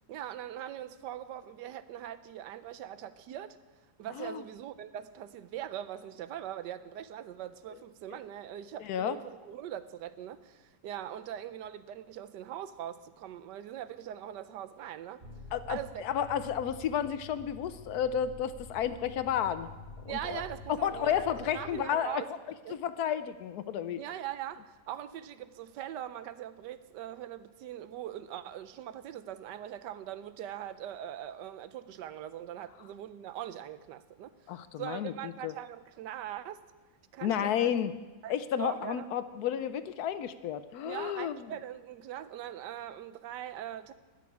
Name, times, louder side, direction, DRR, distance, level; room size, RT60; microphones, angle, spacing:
voice 1, 0.1-3.6 4.0-15.2 15.7-16.0 20.1-22.3 22.6-22.8 24.0-34.3 34.8-36.6 37.1-37.7 38.2-39.0 40.8-43.9, right 11 dB, 80° right, 13 dB, 1.3 m, -41 dB
voice 2, 8.8-9.2 15.5-19.7 20.0-20.4 20.7-22.2 22.7-24.0 34.5-35.1 35.4-35.5 37.2-37.9 38.3-41.4, left 9 dB, 70° left, 12 dB, 1.0 m, -32 dB
sound 1, 15.2-21.8, left 2 dB, 35° right, 1.6 m, -48 dB
13.5 x 6.0 x 9.7 m, 1.2 s
omnidirectional pair, 1.8 m